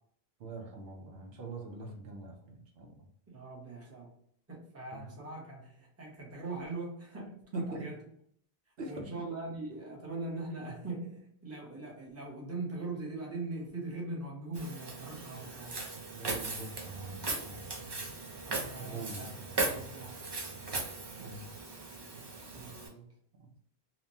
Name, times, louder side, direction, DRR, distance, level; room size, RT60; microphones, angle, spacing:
voice 1, 0.4-3.0 4.9-5.1 7.5-7.9 8.8-9.1 16.1-17.6 18.2-18.3 18.8-19.5 20.6-21.8 22.2-22.3 23.4-23.6, right 2 dB, 75° right, 0.8 m, -43 dB
voice 2, 3.3-4.1 4.5-8.0 8.8-15.8 18.4-20.3 22.5-23.1, right 2 dB, 15° right, 0.7 m, -41 dB
Walk footsteps, 14.6-22.9, right 3 dB, 40° right, 0.4 m, -38 dB
2.9 x 2.1 x 2.6 m
omnidirectional pair, 1.0 m